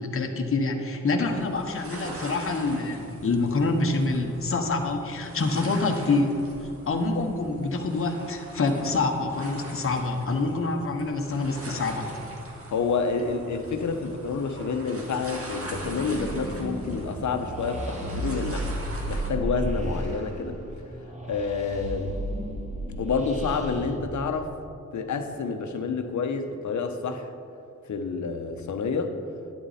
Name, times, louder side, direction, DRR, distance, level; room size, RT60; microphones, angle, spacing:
voice 1, 0.0-6.3 6.9-12.1, left 3 dB, 45° left, 3 dB, 1.1 m, -26 dB
sound 1, 1.2-19.3, right 1 dB, 50° right, 2.0 m, -42 dB
voice 2, 12.7-20.6 21.2-22.2 23.0-24.5 24.9-27.3 27.9-29.2, left 4 dB, 75° left, 7 dB, 0.9 m, -29 dB
sound 2, 15.7-24.0, right 1 dB, 25° right, 1.7 m, -33 dB
11.0 x 9.4 x 4.2 m, 2.7 s
wide cardioid pair, 95°, 29 cm